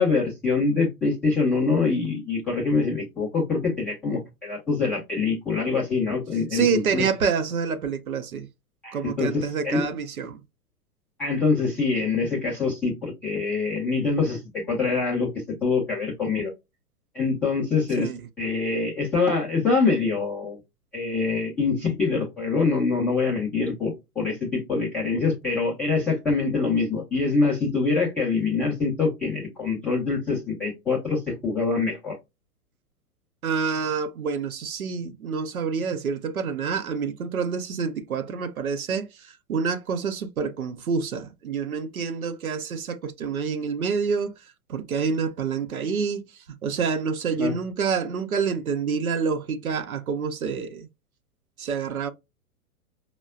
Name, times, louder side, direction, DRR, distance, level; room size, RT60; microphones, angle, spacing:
voice 1, 0.0-7.1 8.8-9.9 11.2-15.3 15.6-16.5 17.1-18.1 18.4-20.6 20.9-32.1 47.4-47.5, left 4 dB, 5° left, 0.4 m, -24 dB
voice 2, 6.5-8.5 8.9-10.4 18.0-18.2 33.4-39.1 39.5-44.3 44.7-46.2 46.6-50.9 51.6-52.1, right 5 dB, 65° right, 0.7 m, -27 dB
5.3 x 2.2 x 2.2 m
figure-of-eight pair, 110°, 46 cm